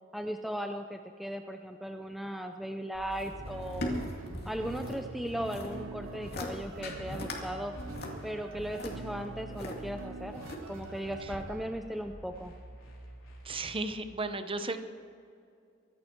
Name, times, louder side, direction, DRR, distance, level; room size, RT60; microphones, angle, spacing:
voice 1, 0.1-3.9 4.5-7.7 8.2-10.4 10.7-12.5, equal, ahead, 5 dB, 0.5 m, -37 dB
sound 1, 2.9-14.0, equal, 90° left, 3.4 m, -49 dB
sound 2, 3.1-5.0 5.3-5.7 6.1-6.5 6.8-7.4 7.8-9.7 10.3-10.9 11.3-11.4, left 1 dB, 55° left, 2.3 m, -39 dB
sound 3, 3.4-11.8, right 4 dB, 80° right, 0.5 m, -46 dB
voice 2, 13.4-14.8, right 3 dB, 25° right, 10 dB, 0.8 m, -35 dB
24.0 x 11.0 x 4.5 m, 2.4 s
head